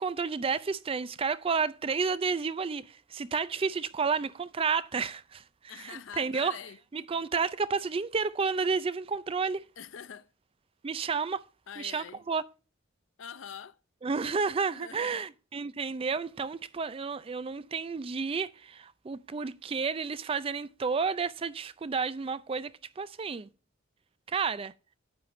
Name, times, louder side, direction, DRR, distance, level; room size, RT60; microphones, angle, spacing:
voice 1, 0.0-5.4 5.8-6.6 6.9-9.6 10.8-11.4 11.8-12.4 14.0-23.5 24.3-24.7, right 5 dB, 30° right, 0.4 m, -31 dB
voice 2, 5.7-6.8 9.8-10.3 11.7-12.2 13.2-13.8 14.7-15.3, left 8 dB, 75° left, 0.6 m, -44 dB
9.7 x 8.6 x 3.1 m
head